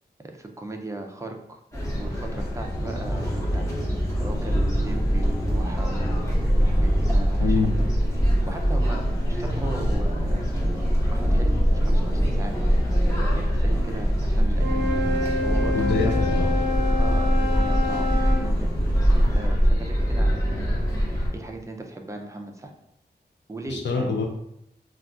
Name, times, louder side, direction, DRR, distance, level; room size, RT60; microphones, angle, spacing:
voice 1, 0.2-1.6 1.9-7.7 8.5-10.5 11.1-12.6 12.9-16.1 17.0-18.7 19.4-20.7 21.3-22.7 23.5-24.1, right 2 dB, 15° right, 3 dB, 0.4 m, -38 dB
sound 1, 1.7-21.3, equal, 15° left, 0.8 m, -25 dB
sound 2, 2.7-21.2, right 1 dB, 40° left, 1.1 m, -27 dB
voice 2, 7.4-7.8 15.7-16.5 23.7-24.2, left 4 dB, 85° left, 1 dB, 0.5 m, -25 dB
Wind instrument woodwind instrument, 14.5-18.5, left 2 dB, 75° right, 0.5 m, -28 dB
2.3 x 2.3 x 3.6 m, 0.79 s
wide cardioid pair, 115°, 18 cm